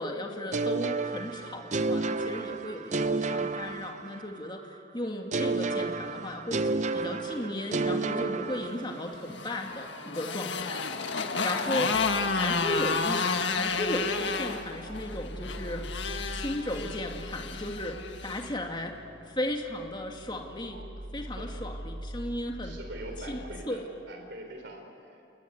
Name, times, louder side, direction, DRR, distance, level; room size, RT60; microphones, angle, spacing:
voice 1, 0.0-10.8 11.1-12.0 12.3-15.8 16.3-19.0 19.2-20.9 21.1-22.8 23.3-23.8, left 1 dB, 25° left, 2 dB, 2.4 m, -35 dB
sound 1, 0.5-4.5 5.3-9.2, right 3 dB, 40° right, 0.6 m, -31 dB
Motorcycle, 9.1-18.5, left 4 dB, 75° left, 1.8 m, -31 dB
sound 2, 11.9-23.7, right 1 dB, 85° right, 1.7 m, -43 dB
voice 2, 21.2-21.7 22.6-25.3, right 1 dB, 65° right, 4 dB, 3.8 m, -44 dB
29.5 x 20.0 x 9.7 m, 2.6 s
head